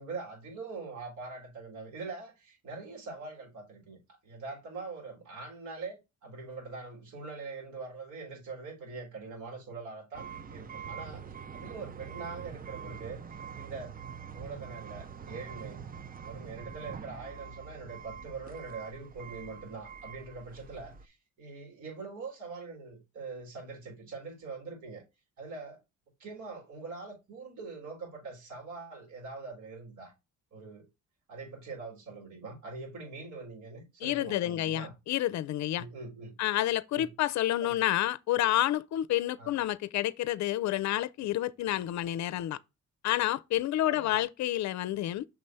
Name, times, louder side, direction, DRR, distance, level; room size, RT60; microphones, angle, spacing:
voice 1, 0.0-14.0 14.3-15.8 16.2-25.0 25.4-25.8 26.2-30.1 30.5-30.9 31.3-34.9 35.8-36.3 36.9-37.1 37.6-37.8 39.4-39.5 43.8-44.2, right 4 dB, 75° right, 4.3 m, -43 dB
sound 1, 10.1-21.1, right 7 dB, 30° right, 0.6 m, -44 dB
voice 2, 34.0-35.8 36.4-42.6 43.0-45.3, left 14 dB, 65° left, 0.6 m, -29 dB
6.1 x 3.2 x 5.4 m
cardioid pair, 90°, 30 cm